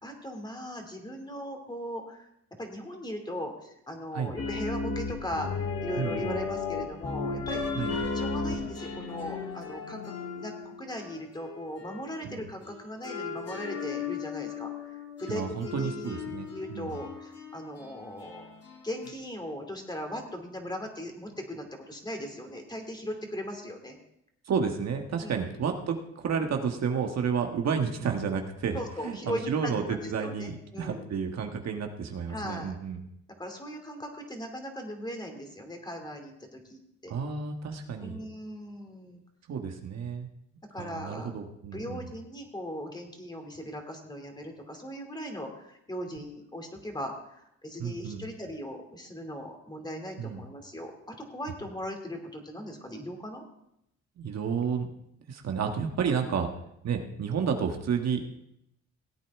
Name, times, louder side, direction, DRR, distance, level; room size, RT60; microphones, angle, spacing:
voice 1, 0.0-2.2 2.6-16.2 16.5-18.5 18.8-24.0 25.2-25.4 28.7-29.7 30.0-31.1 32.3-32.8 33.4-37.1 38.0-39.2 40.7-41.3 41.7-53.4, equal, 15° left, 3 dB, 2.6 m, -39 dB
sound 1, 4.4-12.2 12.7-19.1, left 4 dB, 55° left, 2.3 m, -35 dB
voice 2, 6.0-6.4 7.7-8.0 12.2-12.4 15.3-17.0 24.5-33.0 37.1-38.2 39.5-40.3 40.8-42.0 47.8-48.2 50.2-50.4 54.2-54.9 55.3-56.5 56.8-58.2, right 6 dB, 60° right, 4 dB, 1.4 m, -31 dB
17.5 x 8.6 x 3.6 m, 0.77 s
cardioid pair, 90°, 30 cm